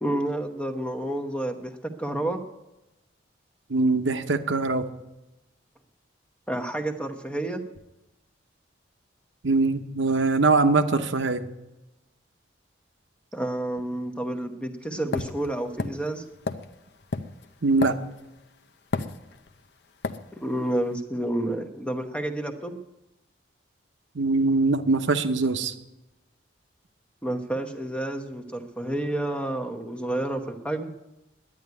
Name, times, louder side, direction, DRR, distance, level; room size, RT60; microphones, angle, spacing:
voice 1, 0.0-2.4 6.5-7.6 13.3-16.2 20.3-22.8 27.2-30.9, right 1 dB, 5° left, 6 dB, 0.9 m, -30 dB
voice 2, 3.7-4.8 9.4-11.5 17.6-17.9 24.1-25.7, right 3 dB, 80° right, 9 dB, 0.9 m, -22 dB
sound 1, 15.1-18.4 18.9-19.6 20.0-20.2, left 3 dB, 60° left, 0.7 m, -31 dB
11.0 x 9.4 x 9.5 m, 0.98 s
head